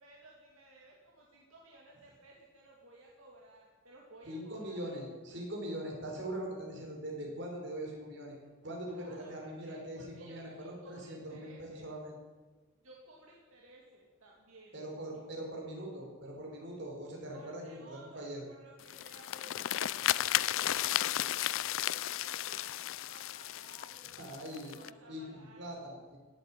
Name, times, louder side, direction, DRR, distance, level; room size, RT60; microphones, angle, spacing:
voice 1, 0.0-4.9 8.9-11.9 12.8-14.8 17.3-22.8 23.0-24.2 24.6-25.7, right 2 dB, 75° right, -2 dB, 2.5 m, -57 dB
voice 2, 4.2-8.3 8.6-12.1 14.7-18.4 24.2-24.8 25.1-26.2, right 1 dB, 55° right, 0 dB, 4.8 m, -42 dB
sound 1, 18.8-24.9, left 13 dB, 65° left, 0.4 m, -34 dB
17.0 x 8.3 x 8.7 m, 1.3 s
head